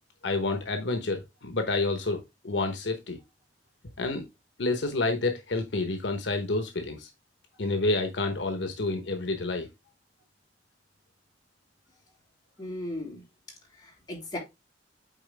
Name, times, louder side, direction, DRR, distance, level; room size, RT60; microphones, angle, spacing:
voice 1, 0.2-3.2 4.0-4.3 4.6-7.1 7.6-9.7, left 2 dB, 75° left, 1.0 m, -29 dB
voice 2, 12.6-13.2 13.8-14.4, left 1 dB, 25° left, 3.1 m, -36 dB
8.8 x 4.0 x 3.4 m
head